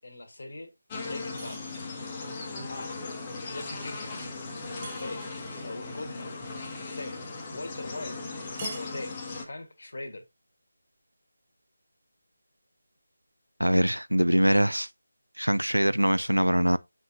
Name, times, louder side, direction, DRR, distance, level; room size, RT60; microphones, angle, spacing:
voice 1, 0.0-0.7 1.0-1.6 2.7-2.9 3.4-4.2 4.9-5.2 5.5-6.3 6.8-7.2 7.5-8.2 8.7-10.2, left 2 dB, 55° left, 1.5 m, -40 dB
sound 1, 0.9-9.5, left 3 dB, 20° left, 1.2 m, -38 dB
sound 2, 1.4-2.2 4.8-5.6 8.6-9.5, right 7 dB, 20° right, 0.6 m, -47 dB
voice 2, 13.6-14.9 15.4-16.8, equal, 85° right, 0.5 m, -23 dB
7.6 x 5.0 x 2.7 m
figure-of-eight pair, 160°, 0 cm